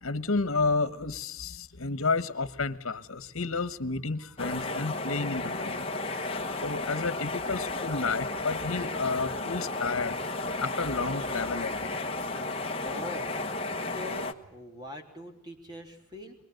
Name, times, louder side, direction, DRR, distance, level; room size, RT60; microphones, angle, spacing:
voice 1, 0.0-6.0 6.6-10.2 10.6-12.1, left 3 dB, 80° left, 13 dB, 1.3 m, -31 dB
sound 1, 4.4-14.3, left 2 dB, 25° left, 1.3 m, -33 dB
voice 2, 12.8-13.4 13.9-16.4, left 1 dB, 20° right, 4 dB, 3.4 m, -42 dB
23.5 x 22.0 x 7.9 m, 0.79 s
head